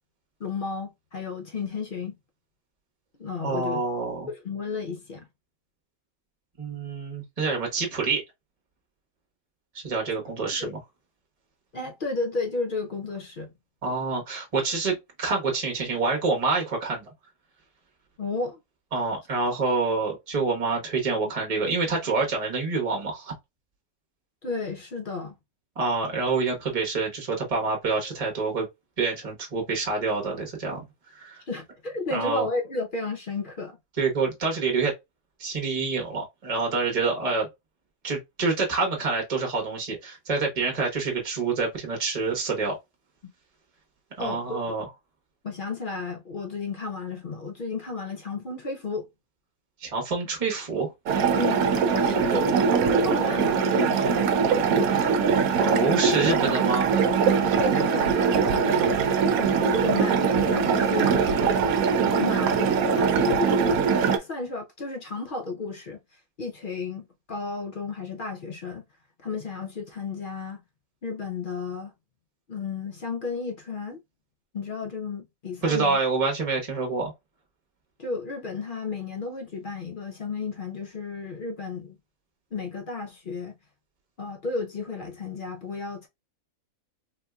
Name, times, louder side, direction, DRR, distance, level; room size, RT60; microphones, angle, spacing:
voice 1, 0.4-2.1 3.2-3.8 4.3-5.3 10.6-10.7 11.7-13.5 18.2-18.6 24.4-25.4 31.5-33.8 44.2-44.6 45.4-49.1 51.3-54.2 57.6-59.1 59.4-61.2 62.0-63.8 64.2-66.0 66.4-68.8 69.2-70.6 71.0-71.9 72.5-74.0 74.5-76.0 78.0-82.0 82.5-83.6 84.2-86.1, left 3 dB, 55° left, 0.6 m, -33 dB
voice 2, 3.4-4.3 6.6-8.2 9.7-10.8 13.8-17.0 18.9-23.3 25.8-28.7 29.0-30.8 31.1-31.4 32.1-32.5 34.0-34.9 35.4-37.5 38.0-42.8 44.2-44.8 49.8-50.9 55.6-57.0 75.6-77.1, right 4 dB, 25° right, 1.1 m, -27 dB
sound 1, 51.1-64.2, right 6 dB, 75° right, 1.1 m, -22 dB
4.0 x 2.6 x 2.3 m
omnidirectional pair, 1.5 m